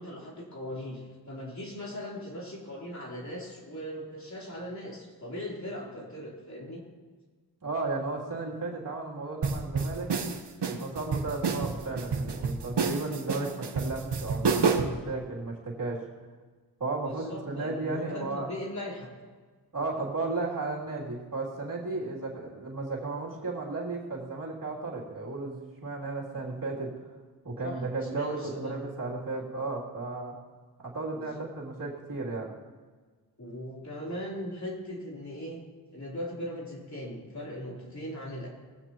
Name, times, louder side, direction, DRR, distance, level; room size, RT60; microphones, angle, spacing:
voice 1, 0.0-6.8 14.7-14.9 17.0-19.1 27.6-27.8 28.1-29.0 31.1-31.5 33.4-35.6 35.9-38.5, equal, 40° left, -4 dB, 3.9 m, -39 dB
voice 2, 7.6-10.1 10.7-14.7 15.1-16.0 16.8-18.5 19.7-26.9 27.4-30.4 30.8-32.5, right 3 dB, 50° right, -4 dB, 3.2 m, -34 dB
sound 1, 9.4-15.0, right 5 dB, 70° right, 1.2 m, -29 dB
19.5 x 15.0 x 3.1 m, 1.4 s
wide cardioid pair, 95°, 42 cm